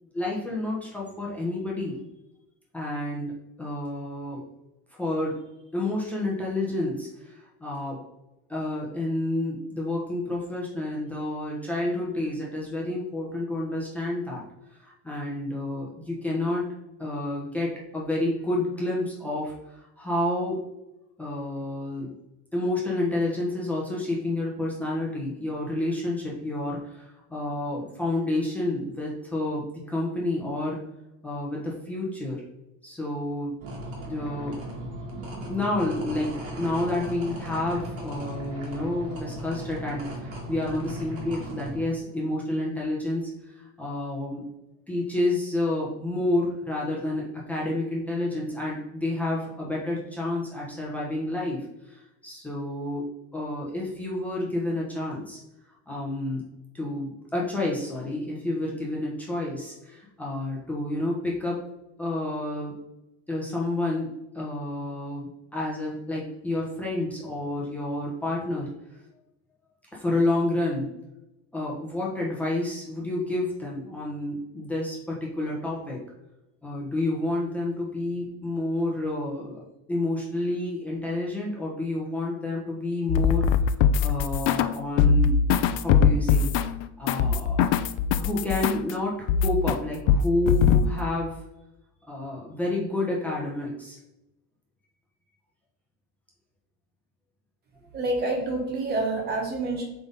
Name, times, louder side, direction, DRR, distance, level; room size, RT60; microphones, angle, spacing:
voice 1, 0.1-2.0 2.7-3.3 3.6-4.4 5.0-5.4 5.7-8.0 8.5-14.4 14.8-16.7 17.0-20.6 21.2-22.1 22.5-30.8 31.2-32.4 32.8-33.5 34.1-34.6 35.5-43.3 43.6-44.4 44.9-53.0 53.3-55.4 55.9-56.4 56.7-61.6 62.0-62.7 63.3-68.7 69.9-70.9 71.5-76.0 76.6-79.6 79.9-83.5 83.8-85.4 85.7-86.5 87.0-87.6 88.2-91.4 92.1-94.0, left 2 dB, 5° left, -5 dB, 1.1 m, -29 dB
sound 1, 33.6-41.8, right 1 dB, 45° right, 2.1 m, -37 dB
sound 2, 83.1-84.7 85.0-88.9 89.3-89.8 90.1-90.9, left 7 dB, 65° left, 0.5 m, -21 dB
voice 2, 97.9-99.9, right 2 dB, 30° right, 2 dB, 1.2 m, -27 dB
7.8 x 3.7 x 4.0 m, 0.93 s
cardioid pair, 170°, 32 cm